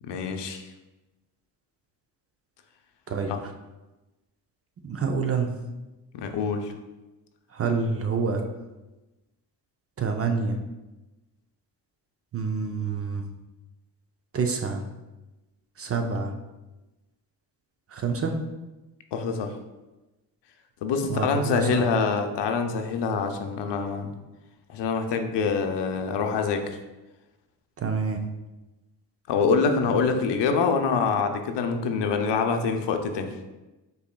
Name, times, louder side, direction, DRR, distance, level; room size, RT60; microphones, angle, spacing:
voice 1, 0.0-0.7 3.3-3.4 6.1-6.7 19.1-19.5 20.8-24.1 24.7-26.8 29.3-33.3, left 5 dB, 70° left, 6 dB, 0.7 m, -25 dB
voice 2, 4.8-5.5 7.6-8.4 10.0-10.6 12.3-13.2 14.3-14.8 15.8-16.3 17.9-18.3 21.1-21.8 27.8-28.2, right 5 dB, 35° right, 4 dB, 0.5 m, -27 dB
5.5 x 4.0 x 2.2 m, 1.1 s
cardioid pair, 95°, 43 cm